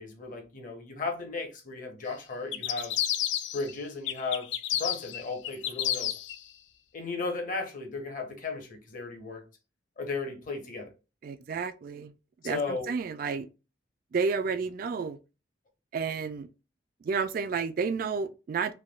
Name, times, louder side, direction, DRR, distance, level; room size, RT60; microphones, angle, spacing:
voice 1, 0.0-2.9 3.5-4.5 4.8-6.1 6.9-9.4 10.0-10.9 12.4-12.9, left 3 dB, 45° left, 0.8 m, -35 dB
sound 1, 2.5-3.7 4.1-6.4, left 11 dB, 75° left, 0.4 m, -30 dB
voice 2, 11.2-12.1 12.4-13.5 14.1-15.2 15.9-16.5 17.0-18.7, right 5 dB, 50° right, 0.3 m, -31 dB
3.4 x 2.3 x 2.3 m
head